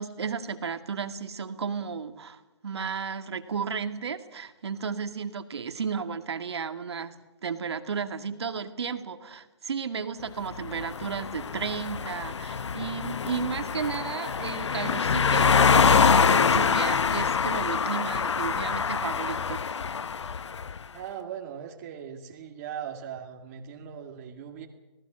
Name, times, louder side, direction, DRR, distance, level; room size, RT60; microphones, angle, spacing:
voice 1, 0.0-19.6, right 6 dB, 65° right, 9 dB, 2.2 m, -33 dB
sound 1, 10.5-20.8, left 6 dB, 75° left, 0.8 m, -25 dB
voice 2, 20.9-24.7, right 8 dB, 30° right, 1 dB, 2.2 m, -39 dB
26.5 x 19.0 x 6.3 m, 1.1 s
hypercardioid pair, 150°, 15 cm